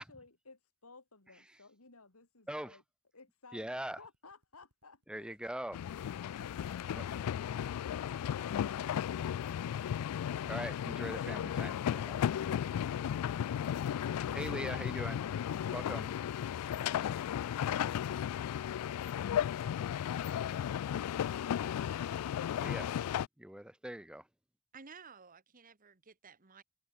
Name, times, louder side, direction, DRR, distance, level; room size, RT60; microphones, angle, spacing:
voice 1, 0.0-2.8 3.1-5.4, left 3 dB, 75° left, 3.0 m, -59 dB
voice 2, 2.5-2.8 3.5-4.0 5.1-5.8 7.0-7.1 10.5-12.2 14.3-15.2 15.7-16.1 22.6-22.9 23.4-24.3, right 1 dB, 5° right, 0.7 m, -41 dB
sound 1, 4.0-6.3 6.7-9.3 9.7-15.4, right 1 dB, 85° right, 6.5 m, -63 dB
sound 2, 5.7-23.3, left 9 dB, 90° left, 0.3 m, -35 dB
voice 3, 24.7-26.6, right 5 dB, 40° right, 1.4 m, -54 dB
head